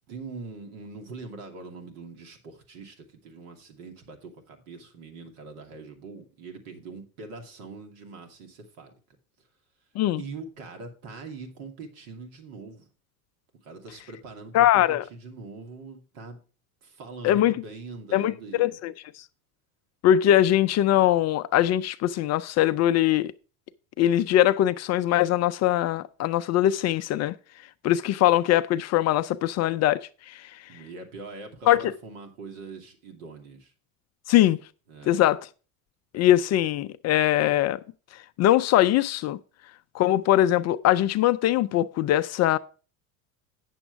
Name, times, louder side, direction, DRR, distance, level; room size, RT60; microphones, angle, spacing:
voice 1, 0.1-8.9 10.2-12.9 13.6-16.4 16.8-18.8 30.7-33.7 34.9-35.2, right 4 dB, 70° right, 2.5 m, -42 dB
voice 2, 14.5-15.0 17.2-17.5 18.1-18.3 18.6-19.2 20.0-23.3 24.0-27.3 27.8-30.0 30.3-30.6 31.7-31.9 34.3-34.6 35.1-35.4 36.1-37.8 38.1-39.4 39.9-42.6, left 13 dB, 40° left, 0.4 m, -22 dB
9.2 x 7.1 x 4.6 m
hypercardioid pair, 85°, 44 cm